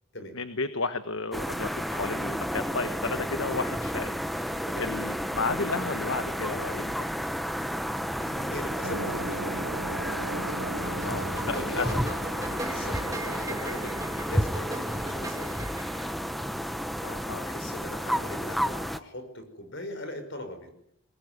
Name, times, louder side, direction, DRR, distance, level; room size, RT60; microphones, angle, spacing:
voice 1, 0.3-7.1 11.0-11.9 17.0-17.5, left 3 dB, 70° left, 10 dB, 1.3 m, -33 dB
sound 1, 1.3-19.0, equal, ahead, 0.9 m, -31 dB
voice 2, 8.2-9.9 11.5-12.0 12.6-15.6 17.4-20.7, left 1 dB, 55° left, 8 dB, 5.8 m, -40 dB
sound 2, 8.8-16.8, right 2 dB, 70° right, 2.8 m, -39 dB
sound 3, 10.5-16.1, right 1 dB, 15° right, 2.0 m, -40 dB
23.0 x 20.5 x 9.6 m, 0.73 s
head